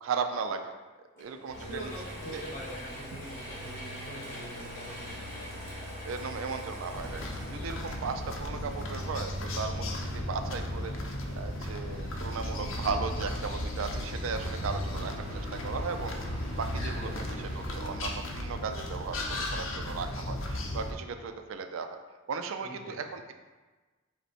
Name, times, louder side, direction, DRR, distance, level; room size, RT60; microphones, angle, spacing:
voice 1, 0.0-0.7 1.2-1.9 2.3-2.4 6.1-7.2 7.5-11.0 11.4-16.2 16.6-17.1 17.4-22.0 22.3-23.3, right 5 dB, 85° right, 7 dB, 0.4 m, -36 dB
Mechanisms / Drill, 1.2-9.8, equal, 15° left, 1.4 m, -45 dB
voice 2, 1.5-5.5 7.8-7.9 17.0-17.4 22.6-23.0, equal, 35° left, -3 dB, 1.0 m, -44 dB
sound 1, 1.5-17.7, equal, 35° right, 1.2 m, -41 dB
sound 2, 6.9-20.9, left 1 dB, 75° left, 0.6 m, -36 dB
5.2 x 2.2 x 4.3 m, 1.3 s
head